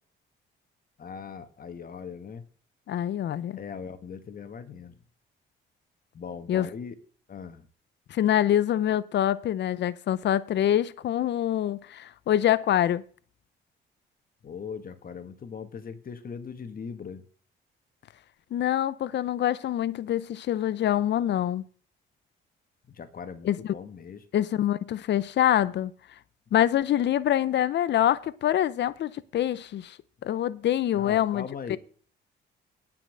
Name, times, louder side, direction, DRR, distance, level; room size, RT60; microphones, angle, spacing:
voice 1, 1.0-2.4 3.6-4.9 6.1-6.9 7.3-7.6 14.4-17.2 22.9-24.2 30.9-31.8, left 6 dB, 45° left, 1.6 m, -40 dB
voice 2, 2.9-3.6 6.5-6.7 8.1-13.0 18.5-21.6 23.4-23.7 24.3-25.9 26.5-30.0 30.2-31.8, left 11 dB, 60° left, 0.7 m, -25 dB
9.7 x 5.7 x 7.9 m
cardioid pair, 90°, 20 cm